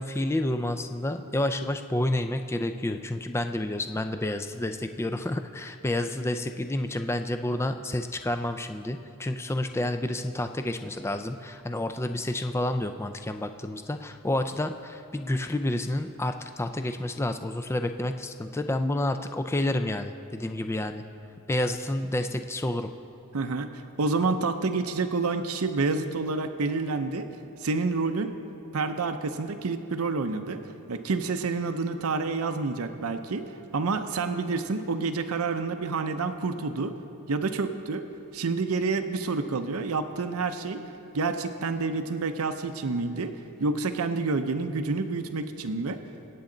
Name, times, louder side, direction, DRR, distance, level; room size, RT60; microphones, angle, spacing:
voice 1, 0.0-21.0 21.5-22.9, left 1 dB, 10° left, 8 dB, 0.3 m, -29 dB
voice 2, 23.3-27.3 27.6-28.3 28.7-30.6 30.9-33.4 33.7-37.0 37.3-38.1 38.3-40.8 41.1-43.3 43.6-46.0, right 3 dB, 75° right, 8 dB, 0.6 m, -28 dB
24.0 x 8.5 x 3.9 m, 2.9 s
head